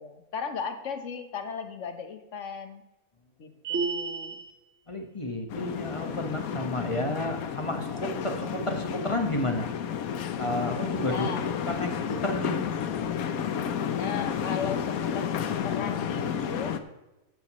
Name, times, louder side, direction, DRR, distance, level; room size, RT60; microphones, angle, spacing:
voice 1, 0.0-2.8 3.4-4.4 11.1-11.4 13.8-16.8, left 6 dB, 55° left, 8 dB, 1.4 m, -36 dB
sound 1, 3.6-4.5, right 4 dB, 55° right, 1.6 m, -30 dB
voice 2, 4.9-9.7 10.4-12.6 13.0-13.1, left 1 dB, 20° left, 3 dB, 1.4 m, -31 dB
sound 2, 5.5-16.8, left 8 dB, 70° left, 1.2 m, -31 dB
14.5 x 9.7 x 3.1 m, 1.0 s
omnidirectional pair, 1.6 m